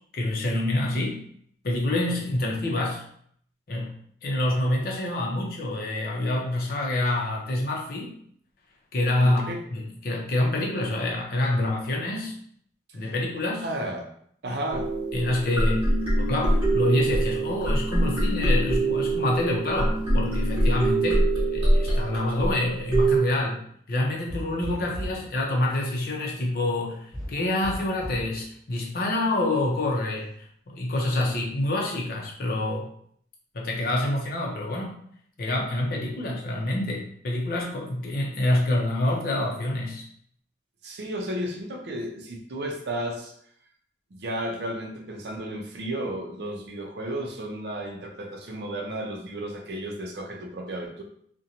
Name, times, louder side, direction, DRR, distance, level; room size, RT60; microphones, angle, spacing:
voice 1, 0.1-1.2 1.6-3.0 3.7-8.1 8.9-12.3 12.9-13.6 14.5-14.6 15.1-15.9 16.2-30.3 30.7-32.9 33.5-34.9 35.4-40.0, left 1 dB, 50° left, -1 dB, 0.6 m, -27 dB
voice 2, 9.2-9.6 13.0-13.1 13.6-14.1 14.4-14.9 24.7-24.9 40.8-43.3 44.1-51.0, right 1 dB, 65° right, 1 dB, 0.5 m, -33 dB
sound 1, 14.7-23.2, right 1 dB, 30° right, 1.2 m, -24 dB
sound 2, 24.3-25.3 27.1-28.3, equal, 10° right, 0.9 m, -36 dB
2.5 x 2.1 x 2.8 m, 0.64 s
head